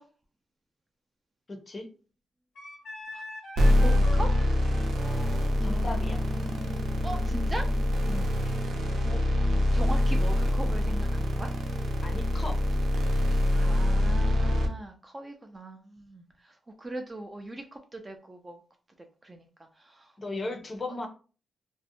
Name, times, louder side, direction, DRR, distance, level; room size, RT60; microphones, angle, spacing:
voice 1, 1.5-1.9 5.6-6.2 8.1-8.3 12.0-12.9 13.3-13.4 20.2-21.1, left 2 dB, 30° left, 5 dB, 0.5 m, -37 dB
Wind instrument woodwind instrument, 2.6-7.9, left 3 dB, 75° left, 0.8 m, -42 dB
sound 1, 3.6-14.7, left 1 dB, 75° right, 0.6 m, -25 dB
voice 2, 3.8-4.3 7.0-7.7 9.0-9.2 9.7-11.5 13.5-18.6 19.2-19.5 19.8-20.4, right 2 dB, 20° right, 4 dB, 0.3 m, -39 dB
2.5 x 2.0 x 2.6 m, 0.37 s
wide cardioid pair, 140°, 0 cm